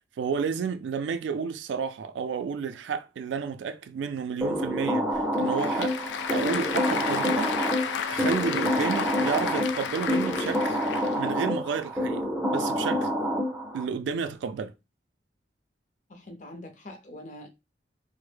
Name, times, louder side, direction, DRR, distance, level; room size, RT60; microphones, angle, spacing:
voice 1, 0.2-6.0 6.3-7.5 8.1-10.8 11.2-12.2 12.5-13.1 13.7-14.7, right 6 dB, 90° right, 0.3 m, -31 dB
sound 1, 4.4-13.9, equal, 5° right, 0.5 m, -28 dB
Applause / Crowd, 5.1-11.3, left 7 dB, 80° left, 0.3 m, -32 dB
voice 2, 16.1-17.5, left 1 dB, 45° left, 0.6 m, -44 dB
3.4 x 2.0 x 3.3 m
head